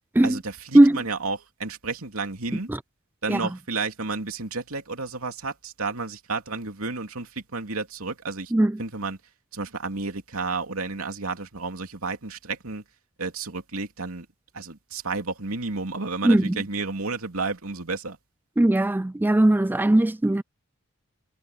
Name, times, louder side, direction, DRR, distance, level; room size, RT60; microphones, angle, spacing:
voice 1, 0.2-2.7 3.2-8.5 8.8-9.2 9.5-12.8 13.2-14.3 14.5-18.2, right 3 dB, 80° right, 2.9 m, -31 dB
voice 2, 16.2-16.6 18.6-20.4, right 1 dB, 10° right, 0.3 m, -19 dB
head